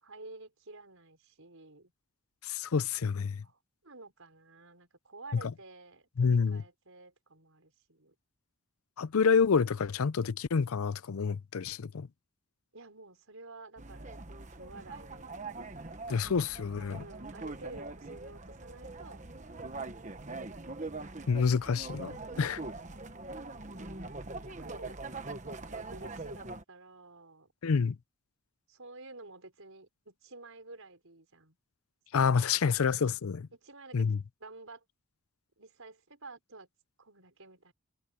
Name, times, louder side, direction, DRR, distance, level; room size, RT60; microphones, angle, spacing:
voice 1, 0.0-1.9 3.4-8.1 12.7-14.2 14.6-15.4 17.0-19.8 22.3-23.0 23.6-25.3 25.6-27.5 28.7-31.6 32.1-32.8 33.5-34.1 34.4-34.8 35.6-36.7 37.0-37.7, right 3 dB, 75° right, 5.0 m, -51 dB
voice 2, 2.4-3.4 5.3-5.4 6.2-6.6 9.0-12.1 16.1-17.0 21.3-22.6 27.6-28.0 32.1-33.5 33.9-34.2, left 5 dB, 85° left, 0.5 m, -28 dB
sound 1, 13.8-26.6, right 3 dB, 35° right, 1.2 m, -42 dB
head